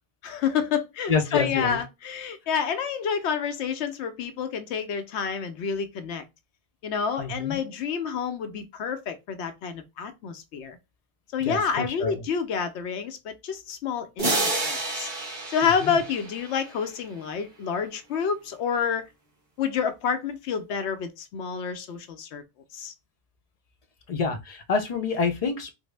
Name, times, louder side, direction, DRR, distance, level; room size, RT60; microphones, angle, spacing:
voice 1, 0.2-6.2 6.8-10.8 11.3-15.1 15.5-19.1 19.6-22.4 22.7-22.9, left 6 dB, 85° left, 0.9 m, -29 dB
voice 2, 1.1-1.8 7.2-7.6 11.4-12.2 15.8-16.0 24.1-25.7, left 5 dB, 45° left, 0.5 m, -27 dB
sound 1, 14.2-16.9, right 2 dB, 50° right, 1.4 m, -29 dB
3.5 x 2.0 x 3.2 m
omnidirectional pair, 1.1 m